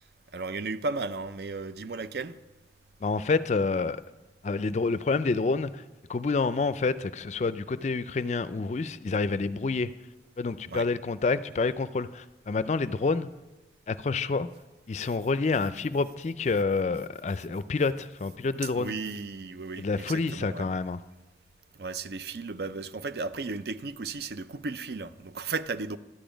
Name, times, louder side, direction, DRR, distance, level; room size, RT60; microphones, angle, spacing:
voice 1, 0.3-2.4 10.7-10.9 18.6-20.7 21.8-26.0, right 3 dB, 65° right, 0.5 m, -35 dB
voice 2, 3.0-4.0 4.4-5.8 6.1-9.9 10.4-13.3 13.9-14.5 14.9-18.9 19.8-21.0, left 4 dB, 40° left, 0.4 m, -28 dB
12.5 x 9.1 x 5.1 m
head